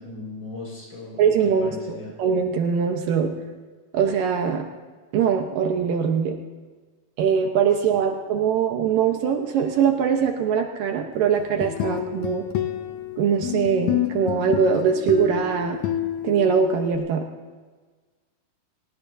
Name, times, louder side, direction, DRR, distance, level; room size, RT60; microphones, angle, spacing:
voice 1, 0.0-1.3 1.6-2.1 7.8-8.0, left 2 dB, 35° left, -3 dB, 6.1 m, -38 dB
voice 2, 1.2-3.3 3.9-4.6 5.1-6.4 7.2-12.4 13.2-15.8 16.2-17.3, right 6 dB, 75° right, 3 dB, 2.5 m, -22 dB
sound 1, 11.4-17.0, left 11 dB, 80° left, 1.6 m, -29 dB
27.5 x 17.5 x 2.7 m, 1.4 s
omnidirectional pair, 4.2 m